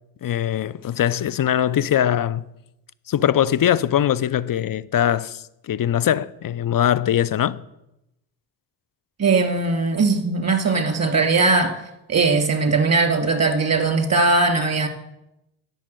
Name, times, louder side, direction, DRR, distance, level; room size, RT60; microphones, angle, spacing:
voice 1, 0.2-2.5 3.1-7.6, left 10 dB, 45° left, 0.6 m, -21 dB
voice 2, 9.2-11.7 12.1-14.9, right 3 dB, 30° right, 2.5 m, -19 dB
10.5 x 7.4 x 6.8 m
hypercardioid pair, 40°, 49 cm